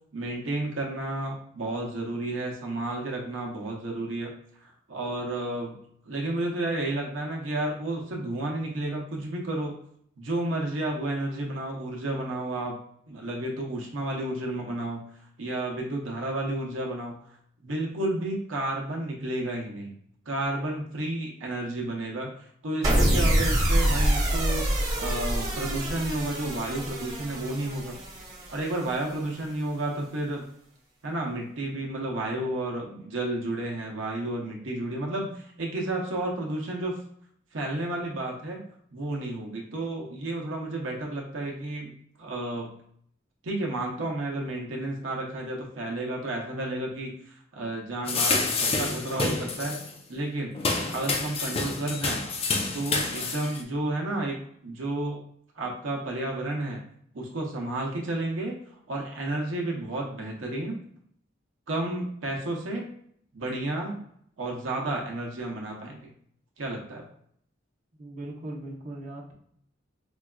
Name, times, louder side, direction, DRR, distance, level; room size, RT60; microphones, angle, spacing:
voice 1, 0.1-4.3 4.6-5.8 6.1-9.7 10.2-12.8 13.1-15.0 15.4-17.2 17.6-19.9 20.3-24.7 25.0-28.0 28.5-30.4 31.0-37.0 37.5-38.6 38.9-41.9 42.2-42.7 43.4-49.8 50.1-50.6 50.9-52.2 52.7-54.4 54.6-55.2 55.5-56.8 57.1-58.6 58.9-60.8 61.7-62.9 63.3-64.0 64.4-66.1 66.6-67.0, right 2 dB, 85° right, -1 dB, 0.7 m, -31 dB
sound 1, 22.8-29.2, right 1 dB, 20° right, 1.1 m, -26 dB
sound 2, 48.1-49.9 50.5-53.6, left 3 dB, 30° left, 0.4 m, -28 dB
voice 2, 68.0-69.3, right 1 dB, 40° right, -4 dB, 0.7 m, -39 dB
4.5 x 2.3 x 2.2 m, 0.67 s
head